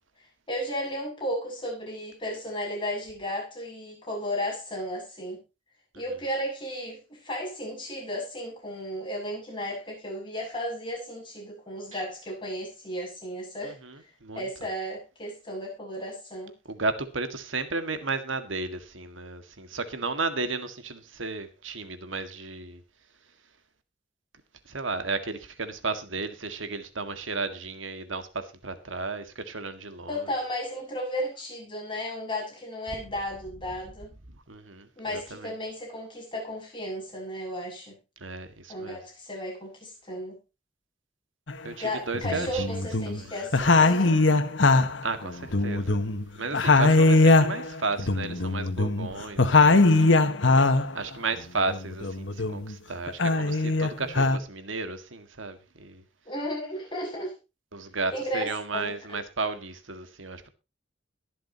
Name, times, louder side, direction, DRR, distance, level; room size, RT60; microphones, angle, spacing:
voice 1, 0.5-5.4 6.0-13.8 14.3-16.5 30.1-34.1 35.0-38.0 38.7-40.4 41.8-44.2 56.3-57.3 58.1-59.2, equal, 25° left, 7.2 m, -34 dB
voice 2, 13.6-14.5 16.7-22.8 24.6-30.3 34.5-35.5 38.2-39.0 41.6-42.8 43.1-43.3 45.0-46.0 46.3-50.2 50.9-56.0 57.7-60.5, right 3 dB, 85° right, 1.8 m, -34 dB
sound 1, 41.5-41.6 42.1-43.2 43.5-46.3 46.5-50.9 51.4-52.7 53.1-54.4, left 3 dB, 70° left, 1.4 m, -21 dB
22.0 x 7.7 x 2.9 m
head